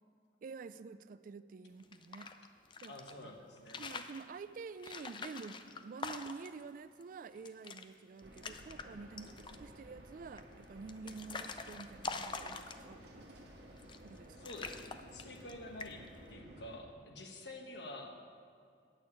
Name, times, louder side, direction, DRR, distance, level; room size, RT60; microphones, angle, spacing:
voice 1, 0.4-2.3 2.8-2.9 3.2-3.3 3.8-13.5 14.0-14.5, right 4 dB, 50° right, 14 dB, 0.3 m, -49 dB
sound 1, 1.8-3.1 3.6-4.2 4.8-6.6 7.0-7.1 7.3-7.9 8.2-8.9 9.2-9.7 10.4-13.1 13.8-14.2 14.4-15.5 15.8-16.2, left 4 dB, 25° left, 0.4 m, -45 dB
voice 2, 2.9-3.9 14.3-18.2, left 1 dB, 80° left, 3 dB, 1.2 m, -49 dB
sound 2, 8.2-16.8, equal, 70° right, 1.5 m, -55 dB
8.7 x 6.3 x 8.4 m, 2.3 s
head